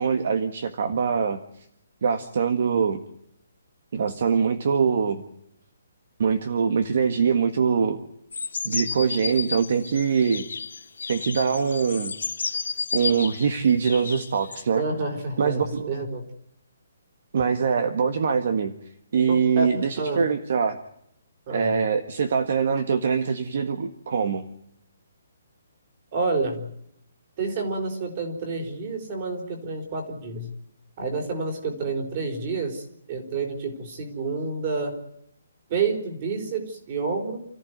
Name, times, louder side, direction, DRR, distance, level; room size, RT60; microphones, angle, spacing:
voice 1, 0.0-1.7 2.0-3.0 3.9-5.3 6.2-8.0 8.6-10.4 11.1-12.1 12.9-14.8 15.4-15.9 17.3-18.7 19.1-20.8 21.5-24.4, right 6 dB, 45° right, 9 dB, 1.7 m, -23 dB
sound 1, 8.3-14.6, left 5 dB, 85° left, 2.9 m, -32 dB
voice 2, 14.8-16.3 19.3-19.7 20.0-20.2 21.5-21.8 26.1-26.7 27.4-30.5 31.0-35.0 35.7-37.4, right 4 dB, 25° right, 3 dB, 4.6 m, -29 dB
29.0 x 15.0 x 9.5 m, 0.76 s
hypercardioid pair, 175°, 0 cm